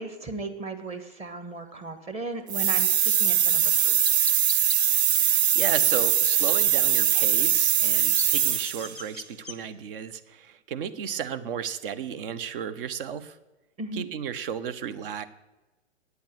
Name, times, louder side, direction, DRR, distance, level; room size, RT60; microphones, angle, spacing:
voice 1, 0.0-4.0 13.8-14.1, right 2 dB, 20° right, 7 dB, 1.3 m, -36 dB
sound 1, 2.5-8.9, right 9 dB, 65° right, 0.6 m, -22 dB
Chirp tweet, 4.0-4.8 7.7-9.6, left 5 dB, 5° left, 0.9 m, -39 dB
voice 2, 5.1-13.4 13.9-15.2, right 8 dB, 50° right, 13 dB, 1.0 m, -34 dB
9.5 x 8.2 x 8.3 m, 1.1 s
figure-of-eight pair, 115°, 35 cm